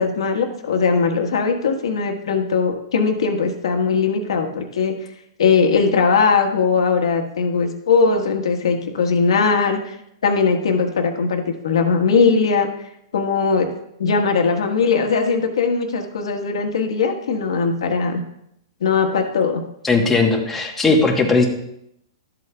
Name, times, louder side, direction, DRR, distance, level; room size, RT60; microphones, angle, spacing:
voice 1, 0.0-4.9 5.4-10.0 10.2-12.7 13.1-13.7 14.0-18.2 18.8-19.6, left 5 dB, 85° left, 3 dB, 1.3 m, -19 dB
voice 2, 19.8-21.5, left 3 dB, 5° left, 0 dB, 1.1 m, -17 dB
12.5 x 7.8 x 2.3 m, 0.77 s
hypercardioid pair, 145°, 3 cm